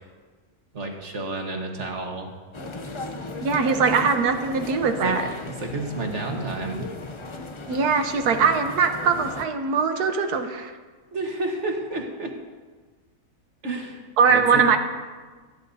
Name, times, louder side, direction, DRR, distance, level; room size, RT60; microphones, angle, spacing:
voice 1, 0.7-2.3 5.0-5.3 5.6-6.8 11.1-12.3 13.6-14.6, right 2 dB, 50° right, 2 dB, 1.6 m, -31 dB
sound 1, 2.5-9.5, left 2 dB, 50° left, 0.3 m, -36 dB
voice 2, 3.4-5.2 7.7-10.7 14.2-14.8, right 5 dB, 85° right, 6 dB, 1.4 m, -21 dB
21.5 x 10.5 x 2.7 m, 1.4 s
omnidirectional pair, 1.6 m